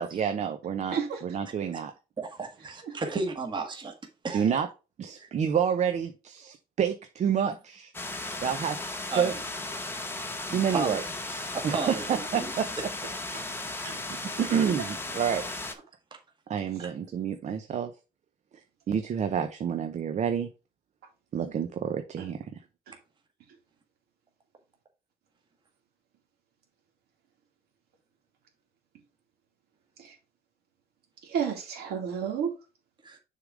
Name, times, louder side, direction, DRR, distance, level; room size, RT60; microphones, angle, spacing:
voice 1, 0.0-1.0 1.2-1.9 4.3-4.7 5.0-7.9 8.4-9.3 10.5-11.0 11.6-12.7 14.4-15.4 16.5-17.9 18.9-20.5 21.3-22.6, right 8 dB, 45° right, 0.7 m, -28 dB
voice 2, 2.2-3.9 4.2-4.6 5.1-5.3 8.4-8.6 9.1-9.3 10.5-11.0 11.3-12.5 16.8-16.9 33.0-33.2, right 3 dB, 30° right, 1.6 m, -34 dB
sound 1, 7.9-15.7, left 2 dB, 15° left, 1.0 m, -36 dB
voice 3, 31.2-32.5, right 7 dB, 70° right, 2.6 m, -32 dB
6.7 x 3.7 x 4.8 m
cardioid pair, 115°, 17 cm